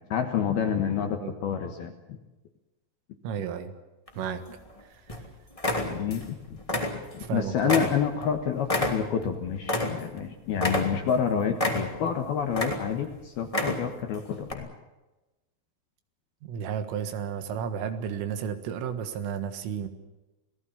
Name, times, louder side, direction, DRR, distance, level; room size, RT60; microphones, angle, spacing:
voice 1, 0.1-2.2 5.7-6.6 7.1-14.7, left 8 dB, 70° left, 5 dB, 2.6 m, -28 dB
voice 2, 3.2-3.7 4.2-4.4 7.3-7.9 16.4-19.9, right 8 dB, 75° right, 9 dB, 4.1 m, -32 dB
sound 1, 4.1-4.7 5.1-5.2 5.6-6.3 6.6-7.3 7.7-10.2 10.6-11.2 11.6-12.1 12.5-13.1 13.4-14.0 14.4-14.5, left 1 dB, 25° left, 0.7 m, -29 dB
28.0 x 18.0 x 7.3 m, 1.1 s
omnidirectional pair, 6.0 m